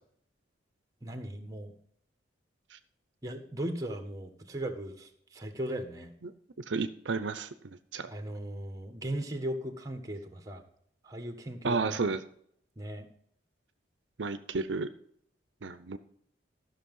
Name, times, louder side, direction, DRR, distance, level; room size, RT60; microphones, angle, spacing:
voice 1, 1.0-1.7 3.2-6.1 8.1-10.6 11.0-12.0 12.8-13.1, right 1 dB, 20° right, 6 dB, 1.4 m, -37 dB
voice 2, 6.7-7.5 7.9-8.1 11.6-12.2 14.2-14.9 15.6-16.0, right 4 dB, 75° right, 11 dB, 0.7 m, -31 dB
13.0 x 6.2 x 5.5 m, 0.66 s
head